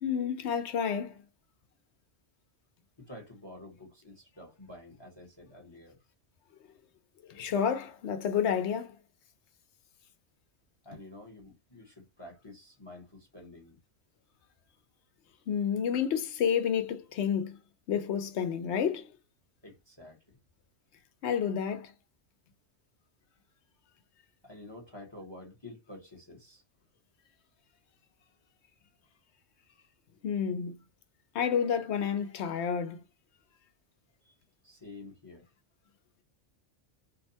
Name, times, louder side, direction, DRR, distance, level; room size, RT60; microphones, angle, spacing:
voice 1, 0.0-1.2 7.3-9.0 15.5-17.6 17.9-19.1 21.2-21.9 30.2-30.8 31.3-33.0, left 7 dB, 70° left, 0.9 m, -30 dB
voice 2, 3.0-6.0 10.8-13.8 19.6-20.4 24.4-26.6 34.2-34.4 34.6-35.5, left 2 dB, 25° left, 0.8 m, -49 dB
2.6 x 2.1 x 2.7 m
omnidirectional pair, 1.2 m